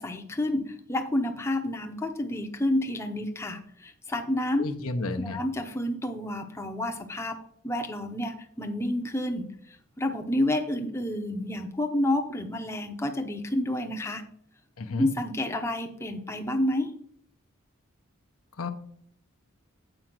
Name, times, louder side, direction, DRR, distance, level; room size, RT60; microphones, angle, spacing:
voice 1, 0.0-4.6 5.2-7.4 7.6-14.2 15.0-16.9, left 1 dB, 10° left, 4 dB, 0.7 m, -29 dB
voice 2, 4.6-5.4 14.8-15.1 18.6-18.7, left 3 dB, 70° left, 7 dB, 0.8 m, -31 dB
7.8 x 5.0 x 5.9 m, 0.63 s
head